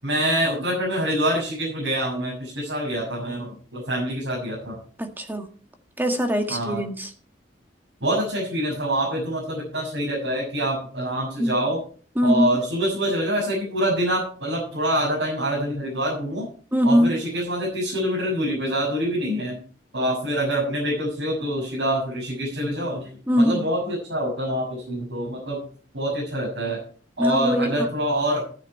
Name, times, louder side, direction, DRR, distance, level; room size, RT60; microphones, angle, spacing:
voice 1, 0.0-4.8 6.5-6.8 8.0-11.8 12.2-16.4 16.8-19.6 19.9-23.1 23.4-25.6 25.9-26.8 27.2-28.4, equal, 80° right, -3 dB, 6.8 m, -25 dB
voice 2, 5.0-5.5 6.0-7.1 11.4-11.6 12.1-12.6 16.7-17.2 23.3-23.7 27.2-27.9, equal, 10° right, 5 dB, 1.7 m, -22 dB
15.0 x 9.6 x 4.4 m, 0.42 s
head